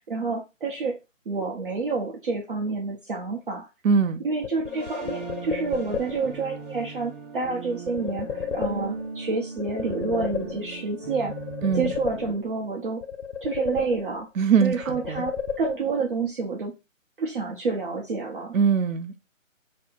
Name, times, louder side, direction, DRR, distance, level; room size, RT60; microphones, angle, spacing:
voice 1, 0.1-1.0 1.3-3.7 4.2-11.4 11.8-13.0 13.4-14.3 14.6-16.7 17.2-18.5, right 4 dB, 45° right, 0.6 m, -29 dB
voice 2, 3.8-4.2 11.6-11.9 14.4-15.3 18.5-19.2, right 6 dB, 80° right, 0.6 m, -22 dB
sound 1, 4.4-6.4 7.9-9.2 9.6-10.9 11.3-12.7 13.0-14.4 14.7-16.1, left 7 dB, 70° left, 0.6 m, -33 dB
sound 2, 4.6-12.3, right 3 dB, 5° right, 1.5 m, -38 dB
2.6 x 2.0 x 3.7 m
figure-of-eight pair, 145°, 40 cm